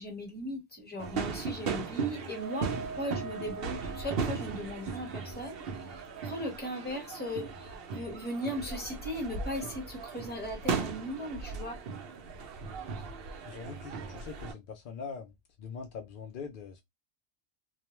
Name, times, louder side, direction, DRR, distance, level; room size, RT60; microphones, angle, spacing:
voice 1, 0.0-11.8, equal, 10° left, 0.9 m, -38 dB
sound 1, 1.0-14.5, right 5 dB, 60° right, 0.7 m, -37 dB
Wind instrument woodwind instrument, 2.3-7.9, right 4 dB, 80° right, 1.0 m, -46 dB
voice 2, 13.4-15.3 15.6-16.8, left 5 dB, 65° left, 0.5 m, -42 dB
2.4 x 2.2 x 2.9 m
omnidirectional pair, 1.4 m